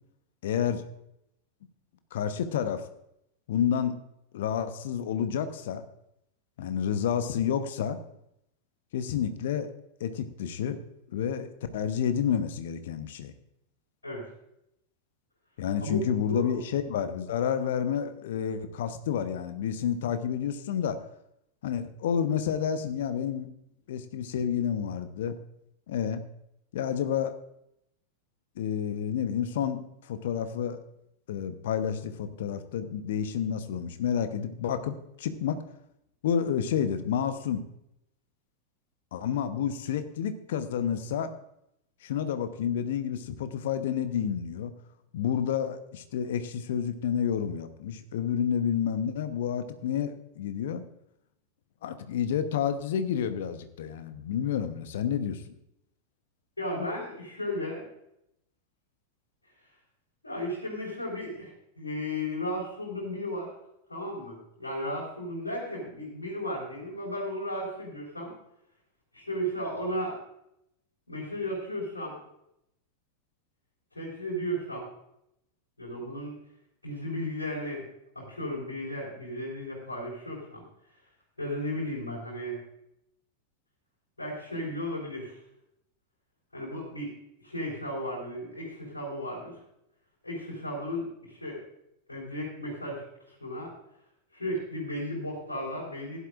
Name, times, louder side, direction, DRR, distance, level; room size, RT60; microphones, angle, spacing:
voice 1, 0.4-0.9 2.1-2.9 3.5-4.0 4.3-5.8 6.6-8.0 8.9-9.7 10.0-10.8 11.1-11.5 11.7-13.3 15.6-21.0 21.6-23.5 23.9-25.3 25.9-26.2 26.7-27.3 28.6-30.8 31.3-35.6 36.2-37.7 39.1-41.3 42.0-44.7 45.1-50.8 51.8-55.5, left 8 dB, 55° left, 10 dB, 1.0 m, -30 dB
voice 2, 56.6-57.9 60.2-61.5 61.8-63.5 63.9-68.3 69.1-70.2 71.1-72.2 73.9-74.9 75.8-76.3 76.8-77.9 78.2-80.6 81.4-82.6 84.2-85.3 86.5-87.1 87.4-89.5 90.2-91.6 92.1-93.7 94.3-96.2, equal, 80° left, -6 dB, 3.9 m, -34 dB
16.0 x 11.5 x 2.5 m, 0.80 s
figure-of-eight pair, 90°, 0 cm